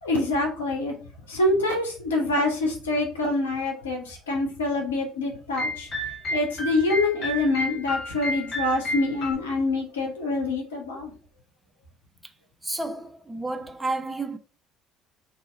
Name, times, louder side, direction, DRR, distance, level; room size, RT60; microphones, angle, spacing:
voice 1, 0.0-0.9 1.3-5.9 6.3-11.1, left 2 dB, 85° left, 0.9 m, -26 dB
sound 1, 5.6-9.3, left 1 dB, 45° left, 1.0 m, -31 dB
voice 2, 12.6-14.4, right 2 dB, 10° right, 0.5 m, -31 dB
2.8 x 2.4 x 3.7 m
hypercardioid pair, 60°, 0 cm